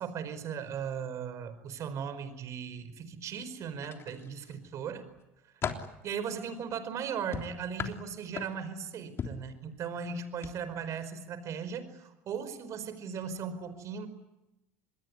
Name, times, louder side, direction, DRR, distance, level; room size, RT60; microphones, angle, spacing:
voice 1, 0.0-5.0 6.0-14.1, right 7 dB, 50° right, 12 dB, 4.9 m, -37 dB
sound 1, 3.8-4.6 5.1-6.0 7.3-8.8 9.2-9.5 10.3-10.5 10.9-11.1, left 6 dB, 40° left, 3.4 m, -38 dB
27.0 x 21.0 x 9.8 m, 0.94 s
supercardioid pair, 85°, 7 cm